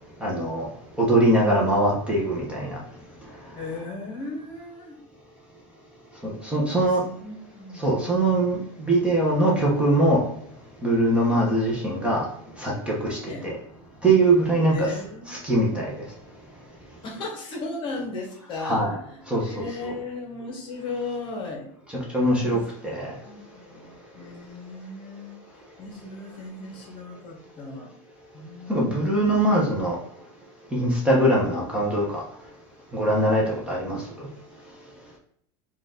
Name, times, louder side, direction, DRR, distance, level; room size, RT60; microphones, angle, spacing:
voice 1, 0.2-0.7 1.0-2.8 6.2-7.0 7.7-10.3 10.8-12.3 12.5-13.6 14.0-15.0 15.3-16.0 18.6-19.0 19.3-19.9 21.9-23.2 28.7-30.0 30.7-32.2 32.9-34.3, right 1 dB, 5° right, -4 dB, 0.9 m, -22 dB
voice 2, 3.5-5.0 7.0-8.0 13.3-13.5 14.6-15.4 17.0-18.8 19.5-21.7 22.4-22.6 23.2-25.4 25.8-27.9 28.3-29.3, left 3 dB, 35° left, 1 dB, 1.0 m, -36 dB
4.4 x 2.5 x 3.7 m, 0.68 s
supercardioid pair, 155°, 15 cm